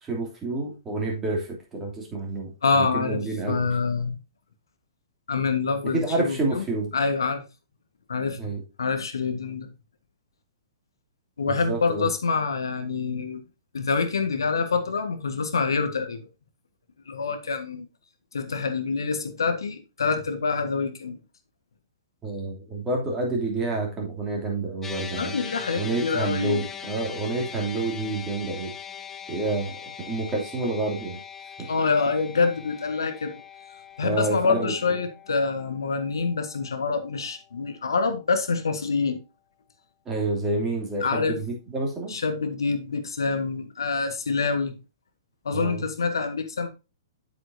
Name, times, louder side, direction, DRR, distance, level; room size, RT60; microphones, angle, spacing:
voice 1, 0.0-3.7 5.9-6.9 8.4-8.6 11.5-12.1 22.2-25.3 25.7-28.7 29.3-29.8 30.1-31.2 31.6-31.7 34.0-34.7 40.1-42.2 45.5-45.8, right 2 dB, 15° right, 3.0 m, -28 dB
voice 2, 2.6-4.2 5.3-6.6 6.9-7.4 8.1-8.4 8.8-9.7 11.4-13.4 13.7-16.3 17.1-17.9 18.3-21.2 25.2-26.6 31.7-33.3 34.0-39.2 41.0-41.4 42.1-44.7 45.4-46.7, left 4 dB, 70° left, 1.5 m, -26 dB
sound 1, 24.8-37.3, left 7 dB, 10° left, 0.7 m, -41 dB
8.4 x 7.6 x 2.8 m
figure-of-eight pair, 115°, 2 cm